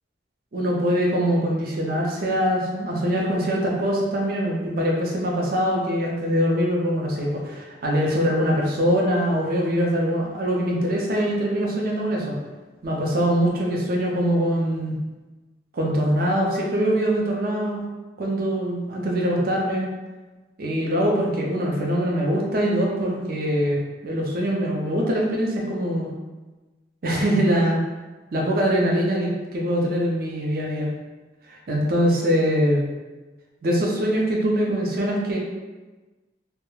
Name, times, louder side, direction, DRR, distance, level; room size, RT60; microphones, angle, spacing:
voice 1, 0.5-12.4 12.8-14.9 15.7-17.8 18.2-19.9 20.6-26.1 27.0-27.8 28.3-30.9 31.5-32.8 33.6-35.4, equal, 50° right, -2 dB, 0.5 m, -23 dB
2.2 x 2.0 x 2.9 m, 1.2 s
head